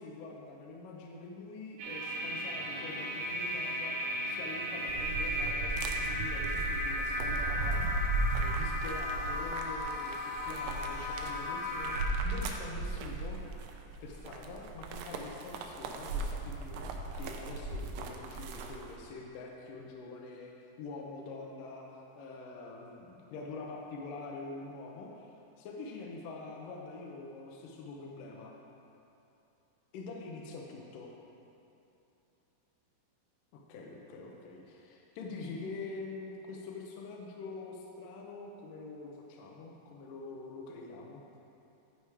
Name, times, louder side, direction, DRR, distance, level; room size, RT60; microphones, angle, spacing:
voice 1, 0.0-4.0 4.3-7.8 8.4-13.4 14.0-20.5 20.8-21.9 22.2-25.3 25.6-28.5 29.9-31.1 33.5-41.2, left 3 dB, 75° left, -1 dB, 2.2 m, -45 dB
sound 1, 1.8-12.0, equal, 70° right, 3.1 m, -35 dB
sound 2, 4.9-19.0, right 3 dB, 85° right, 2.6 m, -37 dB
11.0 x 4.9 x 4.7 m, 3.0 s
omnidirectional pair, 4.4 m